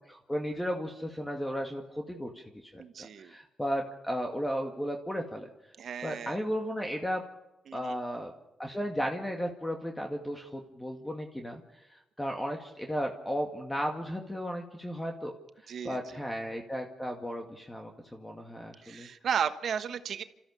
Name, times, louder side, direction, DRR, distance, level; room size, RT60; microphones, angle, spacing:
voice 1, 0.1-2.4 2.7-5.5 6.0-7.2 7.7-8.3 8.6-11.6 11.9-15.3 15.8-19.1, equal, 10° left, 3 dB, 2.2 m, -34 dB
voice 2, 2.8-3.3 5.8-6.4 7.7-8.0 15.7-16.2 18.8-20.2, right 7 dB, 70° right, 11 dB, 1.2 m, -34 dB
28.0 x 14.0 x 7.0 m, 0.97 s
cardioid pair, 65°, 0 cm